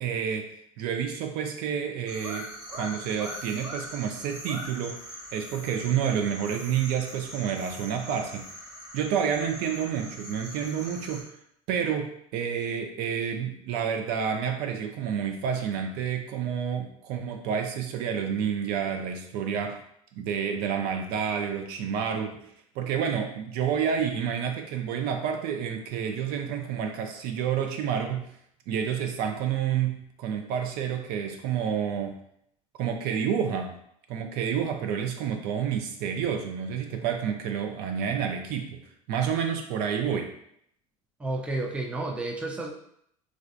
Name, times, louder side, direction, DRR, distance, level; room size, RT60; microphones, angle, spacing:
voice 1, 0.0-0.5 0.8-5.0 5.3-8.5 8.9-11.3 11.7-19.8 20.2-22.5 22.8-28.3 28.7-32.2 32.8-33.7 34.1-38.8 39.1-40.3, right 8 dB, 60° right, 4 dB, 0.5 m, -29 dB
sound 1, 2.1-11.2, equal, 20° right, 1.1 m, -42 dB
voice 2, 41.2-42.7, right 2 dB, 5° right, 1 dB, 0.4 m, -31 dB
3.2 x 2.5 x 2.5 m, 0.70 s
hypercardioid pair, 90°, 18 cm